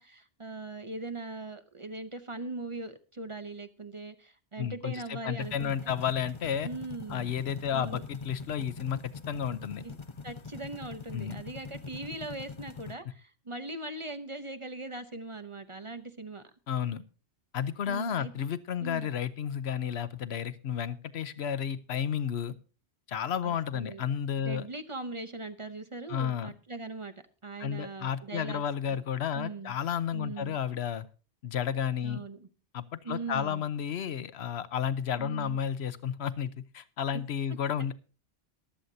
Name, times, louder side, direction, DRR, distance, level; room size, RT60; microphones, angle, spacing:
voice 1, 0.0-5.9 6.6-7.3 7.7-8.0 9.8-10.0 10.2-16.4 17.8-18.3 18.8-19.1 23.4-24.0 24.4-27.1 27.4-28.6 28.9-29.0 29.3-29.7 30.1-30.6 32.0-32.5 33.0-33.6 35.2-35.6, right 2 dB, 30° right, 9 dB, 0.8 m, -40 dB
voice 2, 4.6-6.7 7.1-9.0 9.3-9.8 11.1-11.4 16.7-17.0 17.5-22.6 23.1-24.7 26.1-26.5 27.6-31.1 31.4-32.2 32.7-37.9, left 8 dB, 80° left, 15 dB, 1.0 m, -32 dB
sound 1, 5.4-12.9, left 5 dB, 30° left, 0.7 m, -44 dB
23.0 x 7.9 x 2.7 m, 0.36 s
omnidirectional pair, 1.1 m